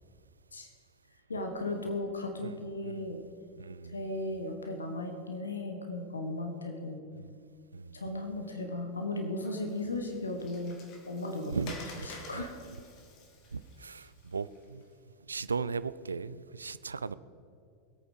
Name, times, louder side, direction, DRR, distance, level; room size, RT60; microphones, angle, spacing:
voice 1, 1.3-3.2 3.9-7.0 7.9-10.8 11.1-11.7 12.0-12.5, left 2 dB, 75° left, 1.6 m, -36 dB
voice 2, 2.4-3.0 3.6-4.0 7.2-7.3 7.7-8.0 11.5-11.7 13.5-14.8 15.3-17.2, right 5 dB, 75° right, 0.4 m, -37 dB
Water, 9.4-14.8, left 3 dB, 40° left, 2.4 m, -50 dB
22.0 x 8.8 x 5.1 m
figure-of-eight pair, 90°, 0 cm